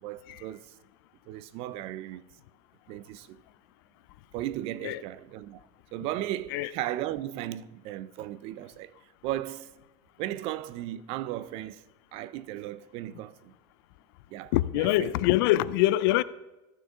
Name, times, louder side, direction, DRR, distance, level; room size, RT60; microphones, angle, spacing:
voice 1, 0.0-0.7 1.3-2.2 2.9-3.4 4.3-5.6 5.9-8.9 9.2-9.7 10.2-11.8 12.1-13.5 14.3-15.1, right 14 dB, 50° right, 0.4 m, -36 dB
voice 2, 14.5-16.2, left 16 dB, 70° left, 0.4 m, -24 dB
14.0 x 6.4 x 3.6 m
supercardioid pair, 140°, 12 cm